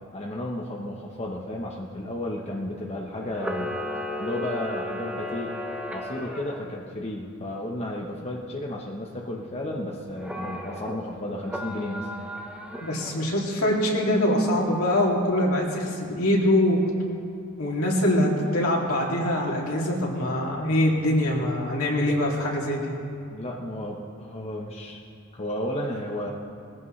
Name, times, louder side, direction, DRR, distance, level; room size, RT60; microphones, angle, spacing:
voice 1, 0.1-3.8 4.2-5.6 5.9-12.1 23.3-25.0 25.3-26.3, left 1 dB, 30° left, -2 dB, 1.0 m, -33 dB
Camera, 3.3-6.6 10.2-10.9 11.4-13.3, left 1 dB, 5° right, 1.1 m, -34 dB
voice 2, 12.8-16.8 17.6-22.9, left 1 dB, 70° left, -2 dB, 2.7 m, -23 dB
21.0 x 15.5 x 3.3 m, 2.5 s
head